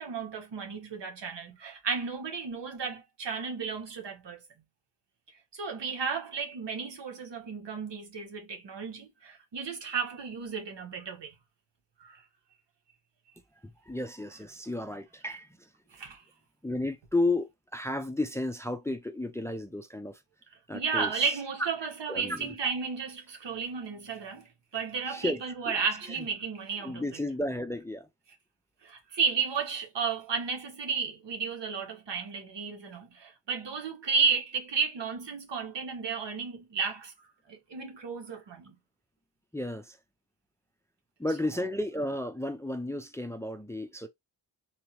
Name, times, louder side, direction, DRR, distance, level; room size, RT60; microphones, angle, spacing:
voice 1, 0.0-4.4 5.5-11.3 12.0-12.2 15.9-16.2 20.7-24.5 24.7-27.0 28.8-37.1 37.5-38.7, right 5 dB, 75° right, 1.6 m, -33 dB
voice 2, 13.8-15.7 16.6-20.2 20.7-21.3 21.6-21.7 22.1-22.5 25.1-25.8 26.2-26.3 26.8-28.1 39.5-40.0 41.2-44.1, left 1 dB, 5° left, 0.5 m, -33 dB
3.9 x 3.0 x 2.9 m
wide cardioid pair, 90°, 42 cm